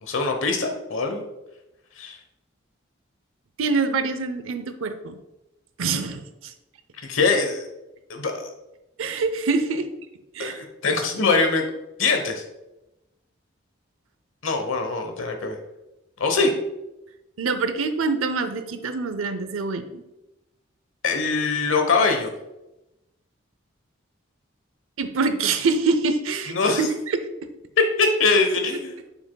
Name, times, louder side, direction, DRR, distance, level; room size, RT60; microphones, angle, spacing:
voice 1, 0.0-1.2 2.0-2.2 7.0-7.6 8.1-8.5 10.4-11.6 12.0-12.4 14.4-15.6 16.2-16.5 21.0-22.3 26.5-26.9 27.8-29.1, left 4 dB, 80° left, 4 dB, 1.0 m, -22 dB
voice 2, 3.6-5.2 5.8-6.5 9.0-9.9 10.3-10.6 17.4-20.0 25.0-27.2, right 4 dB, 90° right, 9 dB, 0.6 m, -25 dB
7.1 x 6.1 x 2.3 m, 0.95 s
head